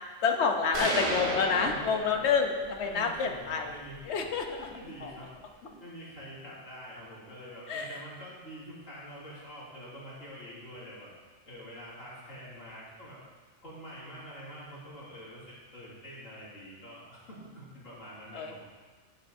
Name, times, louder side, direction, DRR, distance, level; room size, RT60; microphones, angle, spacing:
voice 1, 0.2-3.8 4.0-4.7 5.0-5.1 7.7-8.0 18.3-18.6, left 5 dB, 65° left, 4 dB, 1.1 m, -28 dB
sound 1, 0.7-2.7, right 1 dB, 55° right, 1.5 m, -33 dB
voice 2, 2.8-5.3 5.6-11.1 11.4-13.2 13.6-18.6, equal, 85° left, -8 dB, 3.1 m, -46 dB
10.0 x 9.8 x 2.7 m, 1.4 s
omnidirectional pair, 1.3 m